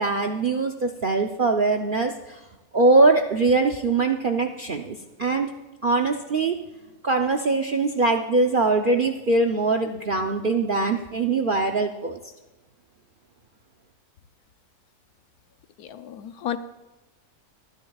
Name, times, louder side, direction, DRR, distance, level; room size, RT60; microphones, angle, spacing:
voice 1, 0.0-2.4 2.7-5.5 5.8-6.6 7.0-12.2, right 3 dB, 55° right, 3 dB, 0.6 m, -22 dB
voice 2, 15.8-16.6, left 10 dB, 75° left, 10 dB, 1.2 m, -32 dB
23.5 x 10.5 x 2.3 m, 1.1 s
omnidirectional pair, 1.7 m